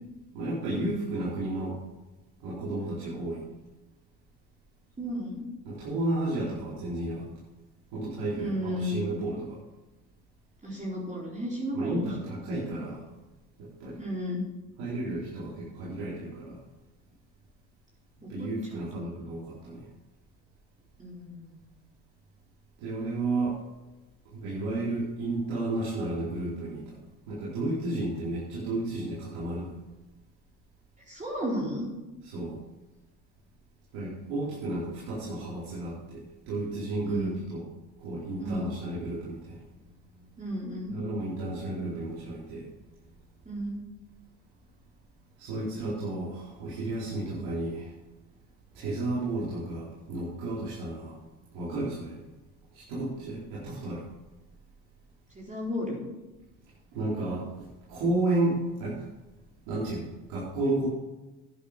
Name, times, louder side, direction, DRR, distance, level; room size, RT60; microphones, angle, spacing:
voice 1, 0.3-1.8 2.4-3.4 5.6-7.2 7.9-9.6 11.7-13.0 13.6-14.0 14.8-16.6 18.3-19.8 22.8-23.6 24.3-26.9 27.3-29.7 32.2-32.6 33.9-37.7 38.0-39.6 40.9-42.7 45.4-47.9 48.7-51.2 51.5-52.2 52.7-54.0 56.9-59.0 59.7-60.9, right 2 dB, 80° right, -8 dB, 4.5 m, -32 dB
voice 2, 5.0-5.4 8.4-9.2 10.6-12.3 14.0-14.4 18.2-18.5 21.0-21.6 31.1-31.9 37.0-37.4 38.4-38.7 40.4-41.0 43.4-43.8 55.3-56.0, equal, 20° right, -4 dB, 4.3 m, -33 dB
11.5 x 9.3 x 5.2 m, 1.1 s
supercardioid pair, 90°, 39 cm